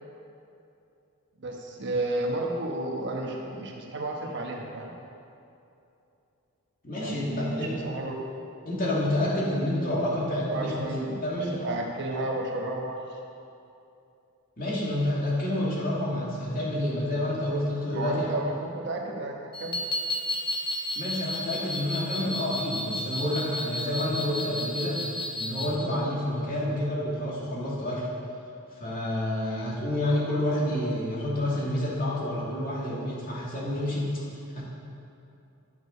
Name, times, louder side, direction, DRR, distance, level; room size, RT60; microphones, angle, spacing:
voice 1, 1.4-4.9 7.0-8.2 10.5-11.2 11.6-13.0 17.9-19.8, right 2 dB, 55° right, 0 dB, 1.2 m, -32 dB
voice 2, 6.8-7.7 8.7-10.8 11.2-11.6 14.6-18.3 20.9-25.1 25.4-28.1 28.8-34.2 34.5-34.6, left 1 dB, 40° left, -6 dB, 2.5 m, -29 dB
sound 1, 19.5-25.8, left 1 dB, 20° left, 0.8 m, -32 dB
11.5 x 6.5 x 5.5 m, 2.7 s
head